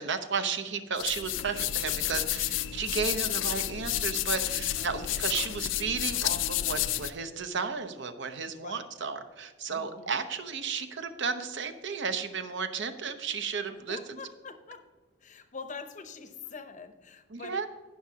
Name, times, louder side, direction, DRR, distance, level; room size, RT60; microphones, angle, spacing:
voice 1, 0.0-14.0 17.3-17.7, right 5 dB, 60° right, 9 dB, 0.7 m, -33 dB
sound 1, 1.0-7.1, left 13 dB, 65° left, 0.4 m, -31 dB
voice 2, 2.0-2.5 4.4-5.2 8.4-8.9 9.7-10.2 13.7-14.9 15.2-17.7, left 4 dB, 35° left, 8 dB, 0.7 m, -46 dB
16.5 x 6.1 x 2.8 m, 1.3 s
head